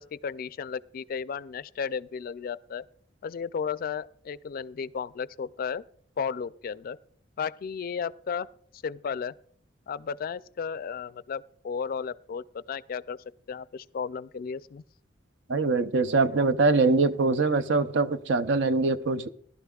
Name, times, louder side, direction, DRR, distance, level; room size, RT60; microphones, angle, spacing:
voice 1, 0.0-2.8 3.2-5.8 6.2-7.0 7.4-8.5 8.8-9.3 9.9-13.2 13.5-14.8, left 6 dB, 50° left, 0.3 m, -34 dB
voice 2, 15.5-19.3, right 3 dB, 70° right, 0.6 m, -23 dB
18.5 x 12.0 x 2.3 m
head